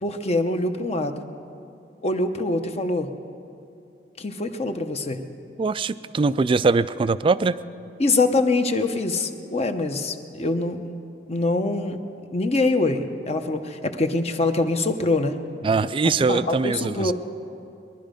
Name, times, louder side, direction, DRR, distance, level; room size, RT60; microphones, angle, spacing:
voice 1, 0.0-1.2 2.0-3.1 4.2-5.2 8.0-10.8 11.3-12.0 12.3-15.4 16.3-17.1, left 2 dB, 35° left, 7 dB, 0.8 m, -24 dB
voice 2, 5.6-7.6 15.6-17.1, right 4 dB, 30° right, 15 dB, 0.3 m, -22 dB
21.5 x 11.5 x 5.2 m, 2.6 s
head